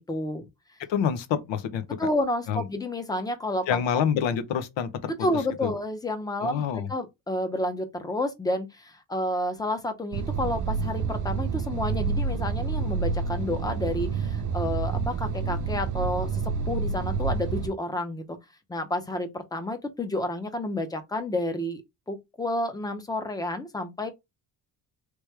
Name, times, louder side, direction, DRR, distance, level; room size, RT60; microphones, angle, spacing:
voice 1, 0.1-0.5 2.0-3.8 5.2-6.6 6.9-18.4 18.7-21.8 22.1-24.1, left 1 dB, 10° left, 0.6 m, -30 dB
voice 2, 0.9-1.8 2.5-2.7 3.7-5.1 5.6-5.7 6.4-6.9, left 8 dB, 90° left, 0.9 m, -27 dB
sound 1, 10.1-17.7, right 5 dB, 45° right, 0.5 m, -28 dB
3.3 x 3.1 x 3.3 m
cardioid pair, 135°, 44 cm